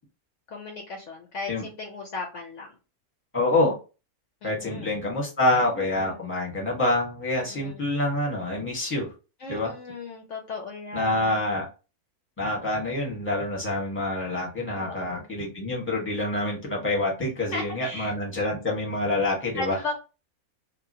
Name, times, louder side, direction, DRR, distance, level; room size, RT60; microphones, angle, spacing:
voice 1, 0.5-2.8 4.4-4.9 5.7-6.3 7.3-7.8 9.4-11.4 14.8-15.3 17.5-18.1 19.5-19.9, left 3 dB, 65° left, 1 dB, 0.9 m, -36 dB
voice 2, 3.3-3.8 4.4-9.1 9.5-9.7 10.9-11.7 12.4-19.8, left 2 dB, 10° left, -2 dB, 1.0 m, -26 dB
2.9 x 2.5 x 2.6 m, 0.31 s
omnidirectional pair, 1.6 m